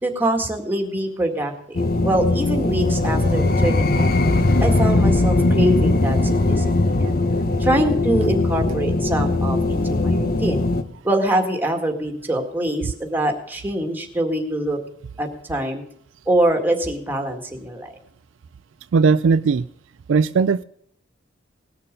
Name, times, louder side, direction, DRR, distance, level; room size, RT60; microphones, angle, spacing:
voice 1, 0.0-4.2 4.6-7.2 7.6-10.6 11.0-14.8 15.2-15.8 16.3-17.9, right 1 dB, 10° right, 2 dB, 1.9 m, -24 dB
sound 1, 1.8-10.8, left 2 dB, 50° left, 0.9 m, -19 dB
voice 2, 18.9-19.7 20.1-20.6, right 5 dB, 70° right, 14 dB, 0.4 m, -17 dB
19.5 x 6.8 x 5.2 m, 0.68 s
head